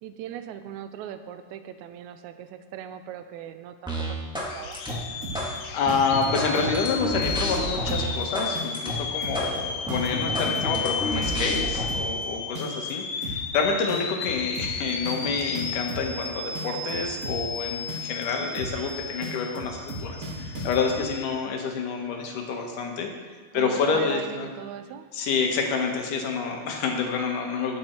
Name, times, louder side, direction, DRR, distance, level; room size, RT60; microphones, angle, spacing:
voice 1, 0.0-4.8 10.4-10.9 23.5-25.1, right 10 dB, 80° right, 9 dB, 1.7 m, -39 dB
sound 1, 3.9-4.5 4.7-5.5 5.9-8.5 8.7-8.9 9.3-9.5 9.8-11.8, right 1 dB, 5° right, 0.6 m, -30 dB
sound 2, 4.5-21.3, left 6 dB, 90° left, 2.6 m, -33 dB
sound 3, 4.6-5.6 5.9-6.9 7.2-7.6 7.9-8.2 8.5-10.9 11.2-12.2 12.5-12.9 13.2-13.6 13.9-16.2 16.5-17.6 17.9-18.2 18.5-18.9 19.2-21.0, right 1 dB, 50° right, 1.0 m, -36 dB
voice 2, 5.3-23.1 23.5-24.5 25.1-27.8, left 5 dB, 70° left, 2 dB, 2.8 m, -28 dB
17.0 x 6.6 x 4.5 m, 1.4 s
omnidirectional pair, 3.9 m